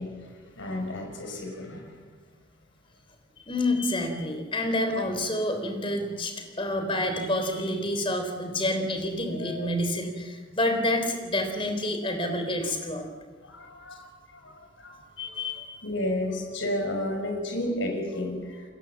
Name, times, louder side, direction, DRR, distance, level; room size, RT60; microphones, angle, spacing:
voice 1, 0.0-2.0 9.3-9.7 13.4-15.4 15.8-18.6, left 1 dB, 70° left, 3 dB, 6.1 m, -33 dB
voice 2, 3.5-13.1 15.2-15.7, left 1 dB, 25° left, 5 dB, 3.8 m, -28 dB
29.5 x 22.5 x 7.3 m, 1.4 s
head